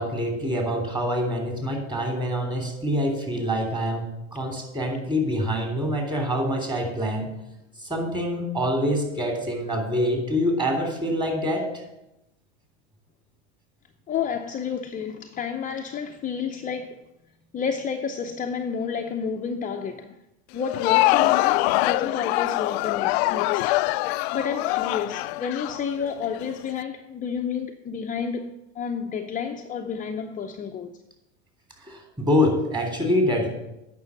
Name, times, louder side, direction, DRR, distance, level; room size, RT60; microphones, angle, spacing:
voice 1, 0.0-7.3 7.8-11.8 31.8-33.5, equal, 15° right, 3.1 m, -25 dB
voice 2, 14.1-17.0 17.5-20.2 20.5-23.7 24.3-30.9, left 6 dB, 25° left, 0.6 m, -30 dB
Crowd, 20.6-26.5, left 19 dB, 65° left, 0.5 m, -23 dB
9.4 x 6.2 x 8.2 m
supercardioid pair, 110°, 35 cm